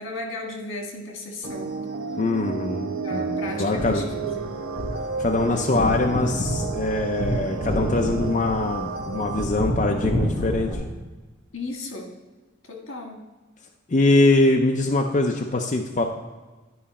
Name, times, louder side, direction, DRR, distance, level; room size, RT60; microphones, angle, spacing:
voice 1, 0.0-1.7 3.0-4.0 4.3-4.4 11.5-12.1 12.7-13.2, left 2 dB, 80° left, 2 dB, 1.6 m, -34 dB
sound 1, 1.4-9.4, right 5 dB, 90° right, 0.7 m, -32 dB
voice 2, 2.2-4.0 5.2-10.8 13.9-16.0, left 2 dB, 40° left, 2 dB, 0.5 m, -23 dB
sound 2, 3.6-10.7, equal, ahead, 2.7 m, -29 dB
11.0 x 5.1 x 4.2 m, 1.2 s
head